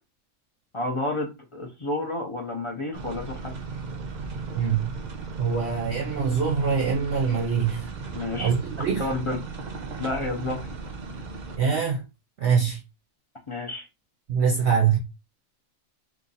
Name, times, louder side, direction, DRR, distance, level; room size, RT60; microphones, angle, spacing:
voice 1, 0.7-3.5 8.1-8.5 9.0-9.4 10.0-10.7 13.5-13.8, left 2 dB, 40° left, 0.4 m, -30 dB
sound 1, 2.9-11.6, right 4 dB, 90° right, 0.4 m, -36 dB
voice 2, 4.5-4.9 5.4-7.9 8.4-9.0 11.6-12.0 12.4-12.8 14.3-15.0, right 6 dB, 60° right, 0.8 m, -24 dB
2.7 x 2.5 x 3.9 m
omnidirectional pair, 1.4 m